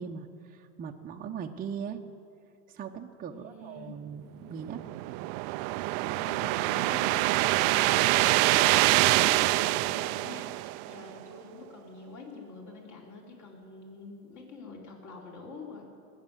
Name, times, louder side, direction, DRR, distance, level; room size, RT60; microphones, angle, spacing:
voice 1, 0.0-2.0 2.7-4.8, right 7 dB, 20° right, 2 dB, 0.8 m, -39 dB
voice 2, 3.3-3.9 6.1-15.8, left 3 dB, 45° left, -2 dB, 4.4 m, -45 dB
sound 1, 4.6-11.1, right 19 dB, 45° right, 0.4 m, -25 dB
19.5 x 7.4 x 9.2 m, 2.5 s
supercardioid pair, 120°, 42 cm